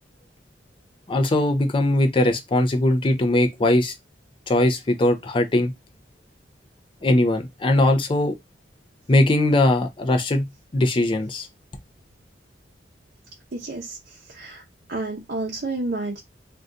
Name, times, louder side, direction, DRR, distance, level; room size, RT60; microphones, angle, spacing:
voice 1, 1.1-3.9 4.5-5.7 7.0-8.3 9.1-10.5 10.7-11.5, left 1 dB, 30° left, 0.5 m, -20 dB
voice 2, 13.5-14.6 14.9-16.2, right 2 dB, 60° right, 0.7 m, -30 dB
2.6 x 2.3 x 3.6 m
head